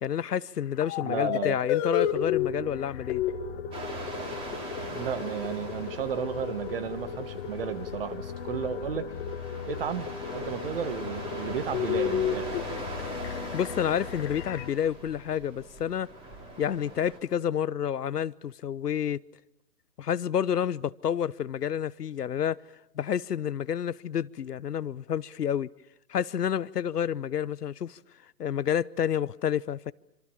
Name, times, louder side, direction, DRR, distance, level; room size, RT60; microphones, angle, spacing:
voice 1, 0.0-3.2 13.5-16.1 16.6-19.2 20.0-22.6 23.0-25.7 26.1-28.0 28.4-29.9, left 9 dB, 75° left, 0.9 m, -29 dB
sound 1, 0.8-2.5 2.9-14.6, left 10 dB, 20° left, 1.6 m, -32 dB
voice 2, 1.0-1.6 4.9-9.1 9.7-12.6, right 8 dB, 35° right, 1.6 m, -33 dB
sound 2, 2.0-14.7, left 8 dB, 40° left, 0.9 m, -41 dB
sound 3, 3.7-17.2, right 2 dB, 10° right, 3.3 m, -42 dB
27.0 x 26.0 x 7.2 m
hypercardioid pair, 155°, 48 cm